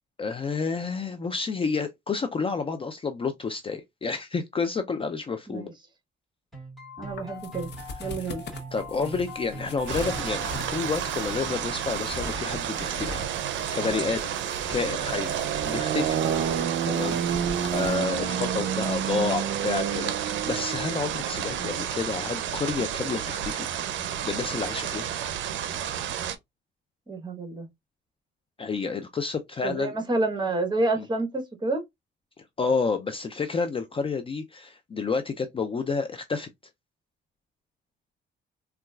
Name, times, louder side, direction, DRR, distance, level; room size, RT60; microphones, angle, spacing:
voice 1, 0.2-5.7 8.7-13.2 13.7-14.3 14.7-15.3 15.6-16.2 16.9-23.7 24.2-25.1 28.6-29.9 31.0-31.1 32.4-36.5, left 4 dB, 25° left, 0.4 m, -30 dB
sound 1, 6.5-11.7, right 2 dB, ahead, 1.6 m, -41 dB
voice 2, 7.0-7.7 8.0-8.4 21.6-21.8 27.1-27.7 29.6-31.8, right 2 dB, 20° right, 1.0 m, -29 dB
sound 2, 7.1-18.0, left 3 dB, 60° left, 0.8 m, -41 dB
sound 3, 9.9-26.3, right 9 dB, 70° right, 0.5 m, -29 dB
3.8 x 2.3 x 2.3 m
cardioid pair, 90°, 20 cm